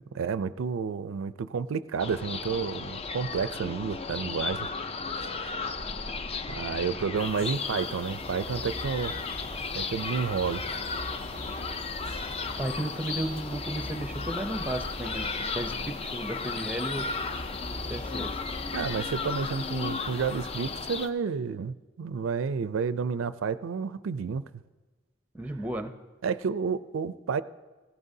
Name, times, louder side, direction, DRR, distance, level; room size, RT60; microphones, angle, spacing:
voice 1, 0.2-4.7 5.2-5.7 6.5-9.1 9.7-10.6 18.7-24.4 26.2-27.4, right 6 dB, 85° right, 14 dB, 0.4 m, -30 dB
sound 1, 2.0-21.1, left 4 dB, 30° left, 0.5 m, -35 dB
sound 2, 5.6-7.3 7.9-20.5, equal, 50° left, 1.7 m, -43 dB
sound 3, 7.1-21.1, left 5 dB, 80° left, 1.2 m, -47 dB
voice 2, 12.6-17.1 17.9-18.3 25.3-25.9, right 1 dB, 10° right, 8 dB, 0.6 m, -34 dB
17.0 x 15.0 x 2.7 m, 1.3 s
head